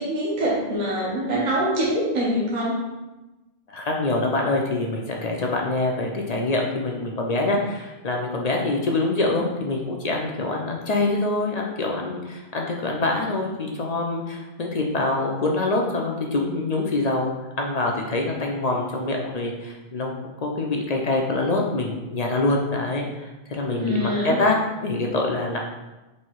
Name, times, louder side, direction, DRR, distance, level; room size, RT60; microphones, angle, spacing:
voice 1, 0.0-2.8 23.7-24.4, equal, 45° right, -6 dB, 1.0 m, -24 dB
voice 2, 3.7-17.3 17.6-20.1 20.4-24.5 24.8-25.6, left 2 dB, 50° left, 0 dB, 0.5 m, -25 dB
4.3 x 2.7 x 4.5 m, 1.1 s
omnidirectional pair, 1.1 m